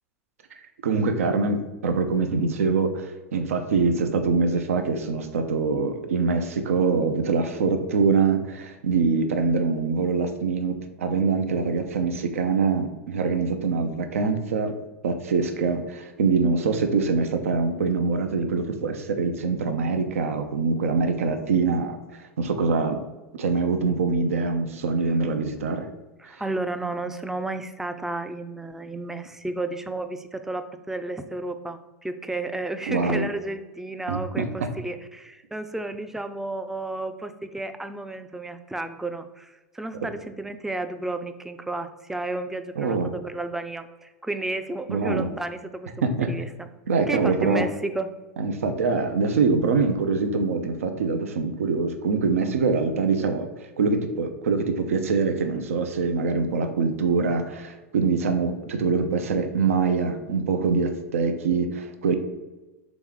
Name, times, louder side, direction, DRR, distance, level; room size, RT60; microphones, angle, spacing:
voice 1, 0.8-14.8 15.0-23.0 23.3-25.9 26.2-26.4 32.9-33.3 34.1-34.7 42.8-43.1 44.9-45.3 46.0-46.3 46.9-47.6 48.4-53.5 53.8-62.2, right 4 dB, 85° right, 7 dB, 0.4 m, -24 dB
voice 2, 26.2-45.9 46.2-46.7 47.1-48.1, right 2 dB, 5° right, 9 dB, 0.3 m, -32 dB
3.5 x 3.0 x 3.7 m, 1.1 s
hypercardioid pair, 95°, 7 cm